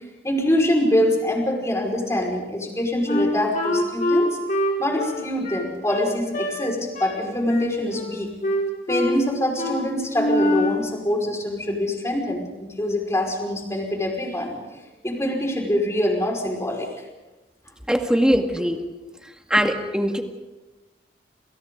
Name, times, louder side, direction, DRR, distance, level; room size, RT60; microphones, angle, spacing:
voice 1, 0.2-4.4 4.8-8.3 8.9-14.6 15.0-16.9, left 1 dB, 15° left, 0 dB, 5.4 m, -24 dB
Wind instrument woodwind instrument, 3.1-6.6 6.9-7.2 7.5-8.2 8.4-9.2 9.6-9.8 10.1-10.8, left 1 dB, 50° left, 5.7 m, -24 dB
voice 2, 17.9-18.8 19.5-20.2, equal, 5° right, 3 dB, 2.1 m, -21 dB
28.5 x 28.0 x 4.0 m, 1.1 s
head